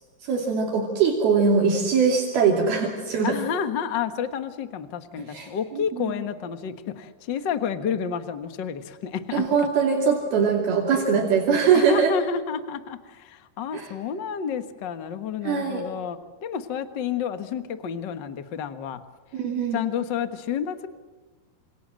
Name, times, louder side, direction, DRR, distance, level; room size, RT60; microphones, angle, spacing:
voice 1, 0.2-3.4 5.3-5.5 6.0-6.2 9.3-12.1 13.7-13.9 15.4-15.8 19.3-19.8, right 6 dB, 70° right, 0 dB, 4.6 m, -22 dB
voice 2, 3.2-9.5 11.7-19.0 19.7-20.9, left 7 dB, 85° left, 10 dB, 0.9 m, -30 dB
27.5 x 27.0 x 7.6 m, 1.2 s
omnidirectional pair, 4.5 m